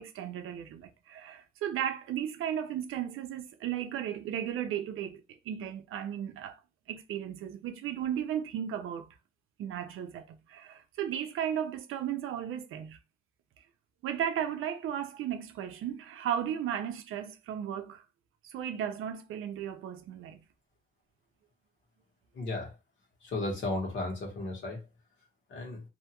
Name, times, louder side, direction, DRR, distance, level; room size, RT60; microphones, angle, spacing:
voice 1, 0.0-6.6 6.9-9.1 9.6-13.0 14.0-18.0 18.4-20.4, right 9 dB, 85° right, 0.5 m, -35 dB
voice 2, 22.3-22.7 23.2-24.8 25.5-25.8, left 2 dB, 60° left, 1.2 m, -34 dB
2.7 x 2.2 x 2.8 m
wide cardioid pair, 175°, 21 cm